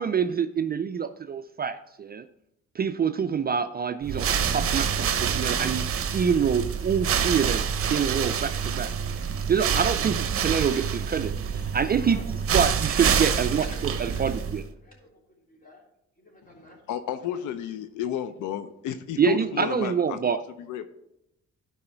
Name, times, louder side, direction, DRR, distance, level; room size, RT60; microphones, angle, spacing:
voice 1, 0.0-2.2 2.8-7.6 7.9-8.9 9.5-12.2 12.5-13.6 14.0-14.6 19.2-20.4, right 7 dB, 30° right, 9 dB, 0.4 m, -26 dB
sound 1, 4.0-14.7, right 7 dB, 45° right, 0.9 m, -27 dB
voice 2, 11.9-12.6 13.5-15.9 16.2-16.8 17.1-17.6, left 1 dB, 30° left, -1 dB, 3.3 m, -49 dB
voice 3, 16.9-20.9, left 10 dB, 80° left, 10 dB, 0.6 m, -32 dB
11.5 x 4.9 x 4.5 m, 0.83 s
cardioid pair, 90°, 30 cm